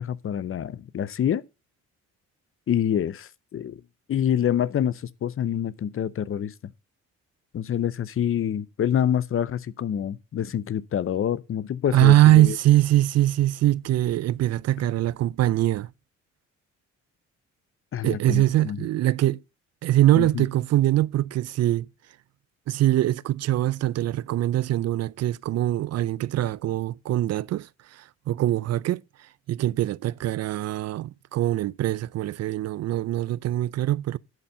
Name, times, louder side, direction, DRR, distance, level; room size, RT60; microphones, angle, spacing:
voice 1, 0.0-1.4 2.7-3.8 4.1-6.5 7.5-12.6 17.9-18.8 20.2-20.4, left 9 dB, 45° left, 0.6 m, -26 dB
voice 2, 11.9-15.9 18.0-19.4 19.8-21.9 22.7-29.0 29.5-34.2, right 14 dB, 60° right, 0.4 m, -22 dB
10.5 x 4.3 x 6.7 m
cardioid pair, 90°, 30 cm